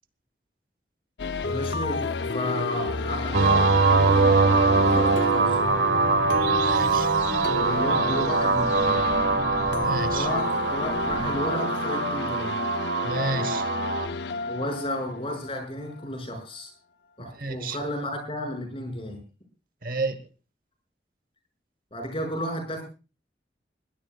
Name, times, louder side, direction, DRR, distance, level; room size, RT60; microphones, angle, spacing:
sound 1, 1.2-16.0, left 3 dB, 75° left, 0.7 m, -31 dB
voice 1, 1.4-5.7 7.5-9.1 10.1-12.5 14.5-16.7 17.2-19.2 21.9-22.8, left 1 dB, 30° left, 4 dB, 5.9 m, -33 dB
sound 2, 3.3-14.1, right 4 dB, 75° right, 1.8 m, -23 dB
sound 3, 4.7-11.4, right 1 dB, 30° right, 6.2 m, -38 dB
voice 2, 6.6-7.1 9.8-10.3 13.0-13.6 17.2-17.8 19.8-20.3, right 3 dB, 50° right, 12 dB, 1.1 m, -31 dB
22.0 x 17.0 x 2.3 m, 0.33 s
head